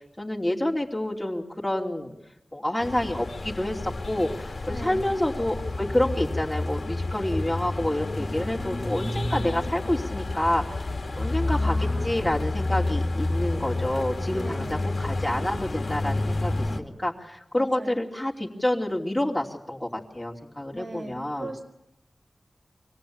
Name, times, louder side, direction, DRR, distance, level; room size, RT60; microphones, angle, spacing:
voice 1, 0.2-2.1 2.5-10.6 11.2-21.5, left 1 dB, 15° left, -1 dB, 2.9 m, -28 dB
sound 1, 2.8-16.8, left 2 dB, 70° left, 2.2 m, -29 dB
voice 2, 4.7-5.1 11.1-12.3 14.3-15.0 17.5-18.0 20.7-21.6, right 1 dB, 75° right, 3 dB, 4.3 m, -39 dB
25.5 x 18.0 x 8.9 m, 0.90 s
wide cardioid pair, 70°, 0 cm